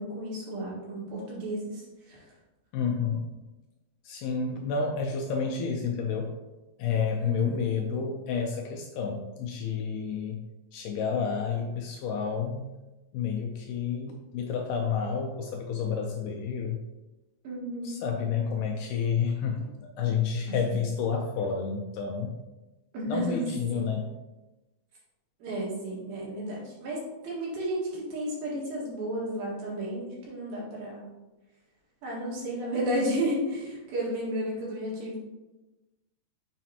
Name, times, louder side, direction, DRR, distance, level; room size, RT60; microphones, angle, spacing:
voice 1, 0.0-2.2 7.2-7.7 17.4-18.0 20.5-20.8 22.9-23.9 25.4-31.1 32.0-35.2, right 1 dB, 75° right, -5 dB, 3.6 m, -33 dB
voice 2, 2.7-3.3 4.1-6.3 6.8-10.4 10.7-12.7 13.1-16.8 17.8-22.4 23.1-24.1, left 6 dB, 90° left, 1 dB, 1.9 m, -30 dB
7.0 x 5.0 x 2.9 m, 1.1 s
omnidirectional pair, 4.4 m